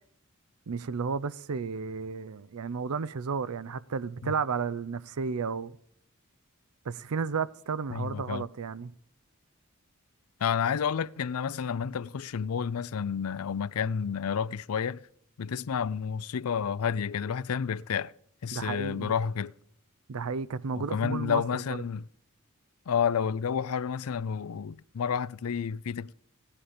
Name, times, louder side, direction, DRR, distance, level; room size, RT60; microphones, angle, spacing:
voice 1, 0.7-5.8 6.9-8.9 18.5-19.1 20.1-21.8, right 5 dB, 85° right, 0.5 m, -33 dB
voice 2, 7.9-8.4 10.4-15.0 15.4-18.1 18.4-19.5 20.8-22.1 22.9-26.1, left 7 dB, 85° left, 0.5 m, -30 dB
16.0 x 10.0 x 5.0 m
head